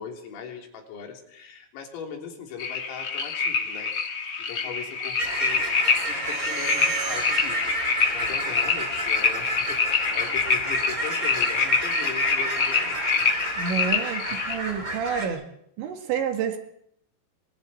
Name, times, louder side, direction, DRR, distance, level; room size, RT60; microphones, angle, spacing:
voice 1, 0.0-3.9 4.5-5.7 5.9-13.3 14.0-14.4 15.2-15.4, left 7 dB, 85° left, 2 dB, 6.0 m, -40 dB
sound 1, 2.6-14.6, left 5 dB, 55° left, 1.6 m, -26 dB
sound 2, 5.2-15.3, right 2 dB, 20° right, 3.2 m, -31 dB
sound 3, 6.1-9.4, right 7 dB, 85° right, 6.2 m, -37 dB
voice 2, 13.6-15.4 15.8-16.6, right 7 dB, 65° right, 4 dB, 4.2 m, -29 dB
28.0 x 24.5 x 4.4 m, 0.73 s
omnidirectional pair, 5.9 m